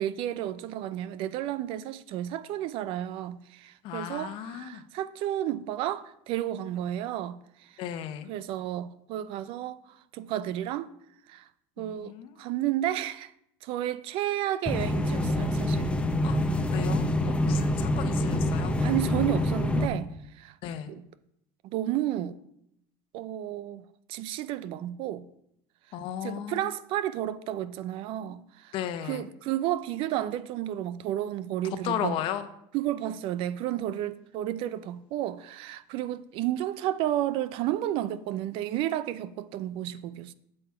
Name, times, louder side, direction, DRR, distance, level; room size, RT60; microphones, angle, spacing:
voice 1, 0.0-7.4 8.3-9.8 10.1-10.9 11.3-11.4 11.8-13.3 13.6-15.9 18.8-20.1 20.4-20.5 20.9-21.0 21.7-22.3 23.1-25.3 26.2-28.7 29.0-32.2 32.7-40.3, right 12 dB, 60° right, 0.6 m, -32 dB
voice 2, 3.8-4.8 7.8-8.3 11.8-12.4 16.2-16.4 16.7-18.8 20.6-20.9 25.9-26.7 28.7-29.3 31.8-32.5, left 10 dB, 55° left, 1.0 m, -35 dB
sound 1, 14.7-19.9, left 1 dB, 10° left, 0.8 m, -26 dB
8.2 x 7.8 x 4.8 m
cardioid pair, 130°, 10 cm